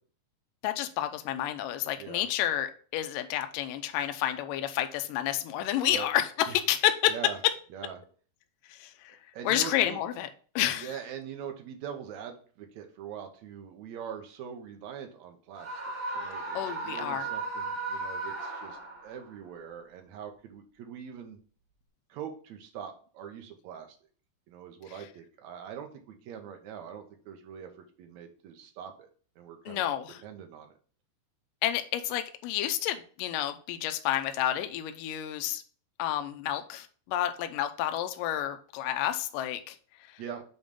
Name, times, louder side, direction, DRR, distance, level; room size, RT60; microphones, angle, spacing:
voice 1, 0.6-7.1 8.7-9.2 9.5-10.3 10.6-10.9 16.6-17.3 29.7-30.2 31.6-35.6 36.0-39.8 40.0-40.2, left 12 dB, 80° left, 8 dB, 2.1 m, -30 dB
voice 2, 9.3-10.0 10.7-21.4 22.1-24.0 24.5-27.7 28.0-29.1 29.4-29.9 30.2-30.7 40.2-40.4, right 8 dB, 80° right, 4 dB, 1.6 m, -42 dB
Screaming, 15.6-19.2, right 3 dB, 35° right, 1.9 m, -36 dB
6.9 x 3.1 x 5.2 m, 0.42 s
omnidirectional pair, 4.3 m